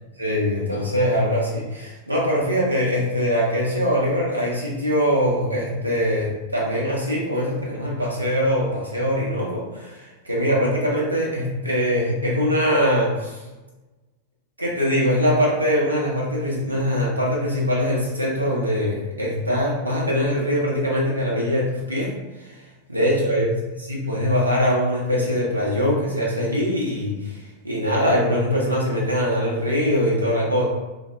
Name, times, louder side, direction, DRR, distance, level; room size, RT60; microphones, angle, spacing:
voice 1, 0.2-13.4 14.6-22.1 22.4-22.6 22.9-30.7, equal, 85° right, -4 dB, 0.7 m, -22 dB
2.1 x 2.0 x 3.0 m, 1.1 s
figure-of-eight pair, 90°, 0 cm